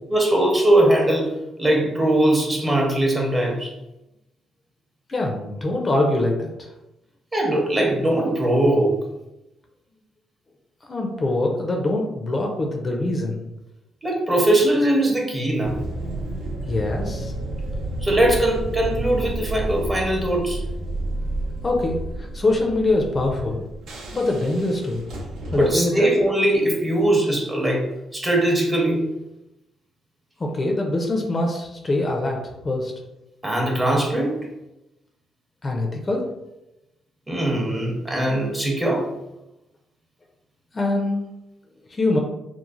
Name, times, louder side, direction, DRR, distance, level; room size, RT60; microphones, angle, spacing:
voice 1, 0.1-1.3 1.6-3.7 7.3-9.0 14.0-15.8 18.0-20.6 25.5-29.1 33.4-34.4 37.3-39.1, right 1 dB, 15° right, -1 dB, 0.7 m, -20 dB
voice 2, 5.1-6.7 10.9-13.4 16.6-17.3 21.6-23.6 24.1-25.0 25.5-26.1 30.4-32.4 32.6-32.9 35.6-36.2 40.7-41.2 41.9-42.2, left 2 dB, 30° left, 1 dB, 0.4 m, -23 dB
sound 1, 15.6-25.7, right 1 dB, 75° right, 0.5 m, -31 dB
3.0 x 2.0 x 2.4 m, 0.93 s
cardioid pair, 90°, 0 cm